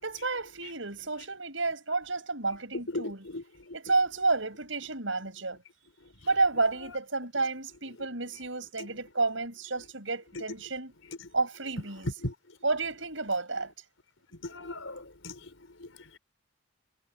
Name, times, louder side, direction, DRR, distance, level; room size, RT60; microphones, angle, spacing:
voice 1, 0.0-3.3 3.7-5.6 6.3-10.9 11.3-12.1 12.6-13.7, right 3 dB, 75° right, 7.7 m, -30 dB
voice 2, 2.9-3.4 12.2-12.3 14.4-15.3, left 2 dB, 85° left, 4.7 m, -36 dB
head